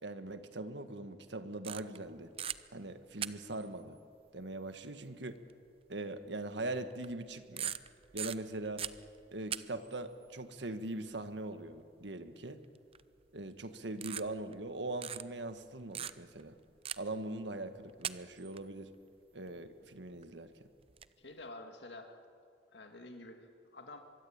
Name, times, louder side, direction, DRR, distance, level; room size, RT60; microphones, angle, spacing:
voice 1, 0.0-2.3 2.7-4.0 4.3-5.4 5.9-7.7 8.1-8.9 9.3-12.6 13.3-16.5 17.0-18.9 19.3-20.5, right 2 dB, 80° right, 9 dB, 1.6 m, -41 dB
sound 1, 1.6-2.1 2.4-2.6 3.2-3.7 4.8-4.9 5.5-5.6 6.9-7.2 7.6-9.6 9.8-10.0 12.9-13.2 14.0-14.7 15.0-15.2 15.9-16.4 16.8-17.2 17.9-18.6 20.2-20.3 20.8-21.1, right 9 dB, 35° right, 0.6 m, -39 dB
voice 2, 21.2-22.2 22.7-23.5 23.7-24.0, left 2 dB, 75° left, 5 dB, 2.2 m, -49 dB
24.0 x 23.0 x 8.8 m, 2.3 s
head